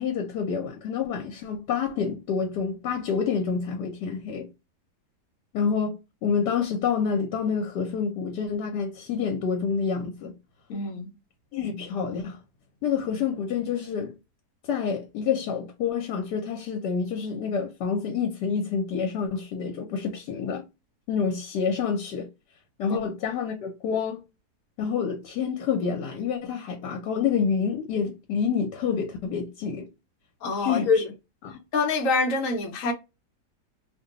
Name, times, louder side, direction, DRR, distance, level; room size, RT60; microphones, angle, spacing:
voice 1, 0.0-4.5 5.5-10.3 11.5-12.4 12.8-14.1 14.7-20.6 21.1-22.3 22.8-24.2 24.8-29.9 30.6-31.0 31.4-31.6, left 6 dB, 80° left, 1.3 m, -28 dB
voice 2, 10.7-11.1 22.9-23.0 30.4-31.1 31.7-32.9, left 4 dB, 60° left, 1.0 m, -25 dB
2.8 x 2.2 x 3.7 m
omnidirectional pair, 1.8 m